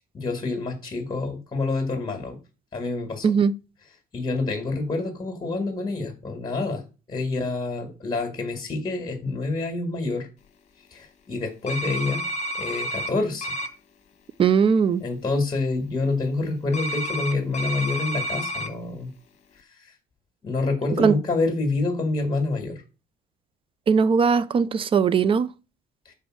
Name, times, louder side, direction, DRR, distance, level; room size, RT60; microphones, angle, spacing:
voice 1, 0.1-2.4 2.7-3.3 4.1-10.3 10.9-12.3 12.5-13.5 15.0-19.1 19.8-19.9 20.4-22.8 26.1-26.2, left 3 dB, 25° left, 1.7 m, -27 dB
sound 1, 11.7-13.1 13.4-13.7 16.7-18.7, equal, 45° left, 1.2 m, -30 dB
voice 2, 14.4-15.0 21.0-21.1 23.9-25.5, right 6 dB, 30° right, 0.5 m, -19 dB
5.3 x 4.3 x 6.1 m
cardioid pair, 110°, 17 cm